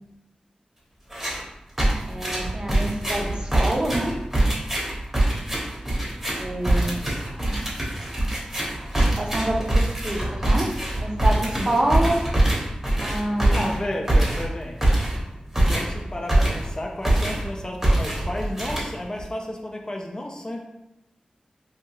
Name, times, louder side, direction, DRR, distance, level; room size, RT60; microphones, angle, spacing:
sound 1, 1.1-1.4 1.8-16.8 17.0-17.5 17.8-19.2, right 1 dB, 15° right, 0.8 m, -23 dB
voice 1, 2.1-4.1 6.4-7.0 9.1-10.7 11.0-12.2 13.0-13.7, right 1 dB, 40° right, 0 dB, 0.5 m, -27 dB
voice 2, 11.6-11.9 13.5-14.8 15.3-20.6, left 1 dB, 30° left, 1 dB, 0.4 m, -32 dB
2.7 x 2.2 x 2.9 m, 0.90 s
wide cardioid pair, 75°, 2 cm